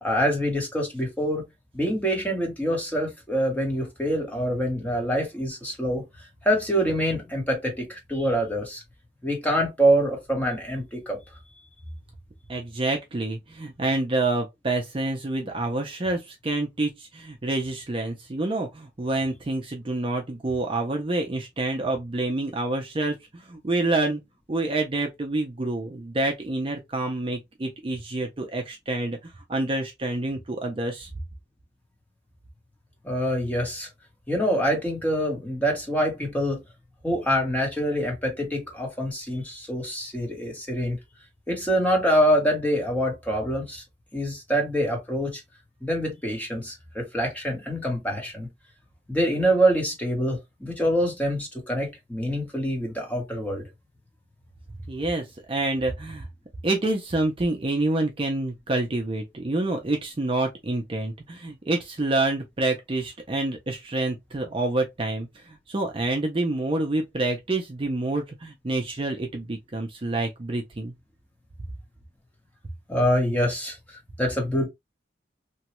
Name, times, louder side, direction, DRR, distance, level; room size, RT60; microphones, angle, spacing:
voice 1, 0.0-1.4 1.7-6.0 6.4-8.8 9.2-11.2 33.0-33.9 34.3-36.6 37.0-41.0 41.5-43.8 44.1-45.4 45.8-48.5 49.1-53.6 72.9-74.7, equal, 10° left, 1.0 m, -25 dB
voice 2, 12.5-24.2 24.5-31.1 54.9-56.3 56.6-70.9, right 2 dB, 30° right, 0.5 m, -27 dB
3.0 x 2.3 x 2.9 m
head